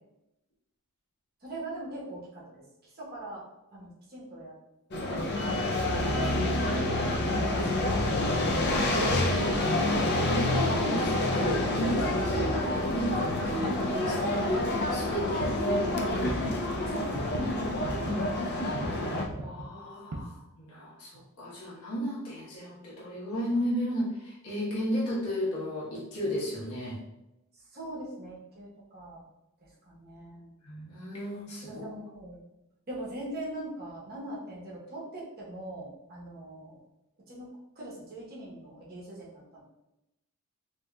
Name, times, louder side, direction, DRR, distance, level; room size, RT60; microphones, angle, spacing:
voice 1, 1.4-4.5 5.0-7.8 8.1-9.0 15.0-16.0 16.9-19.0 27.5-29.2 29.6-30.5 31.7-32.4 32.9-36.8 37.3-39.6, right 1 dB, 45° right, -5 dB, 0.9 m, -42 dB
sound 1, 4.9-19.3, left 1 dB, 45° left, 0.4 m, -28 dB
voice 2, 9.1-14.3 14.9-16.3 19.3-27.0 30.6-31.8, equal, 80° left, -6 dB, 1.1 m, -34 dB
sound 2, 15.4-16.8 17.2-17.5 17.7-18.3 18.8-19.6 20.1-20.2 21.2-21.3, right 2 dB, 75° right, 0.5 m, -36 dB
3.5 x 2.7 x 2.2 m, 0.92 s
head